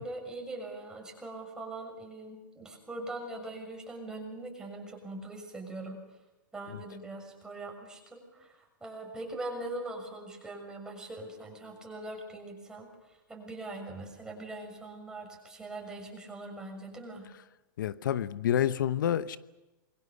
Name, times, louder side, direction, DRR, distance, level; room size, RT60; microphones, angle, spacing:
voice 1, 0.0-6.0 6.5-17.2, right 2 dB, 5° right, 6.6 m, -42 dB
voice 2, 17.8-19.4, left 10 dB, 75° left, 0.9 m, -28 dB
27.0 x 23.0 x 6.8 m
hypercardioid pair, 145°, 11 cm